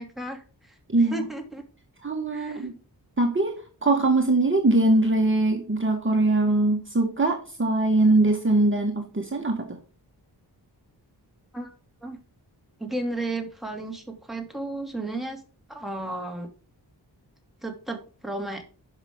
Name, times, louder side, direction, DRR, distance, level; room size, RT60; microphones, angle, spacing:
voice 1, 0.0-0.8 1.1-1.6 2.3-2.7 11.5-11.7 12.0-12.2 12.8-15.4 15.7-16.5 17.6-18.6, right 2 dB, ahead, 2 dB, 2.7 m, -33 dB
voice 2, 0.9-1.3 2.0-2.7 3.2-9.8, right 2 dB, 30° right, 2 dB, 1.8 m, -22 dB
11.0 x 6.1 x 3.7 m, 0.36 s
wide cardioid pair, 80°, 41 cm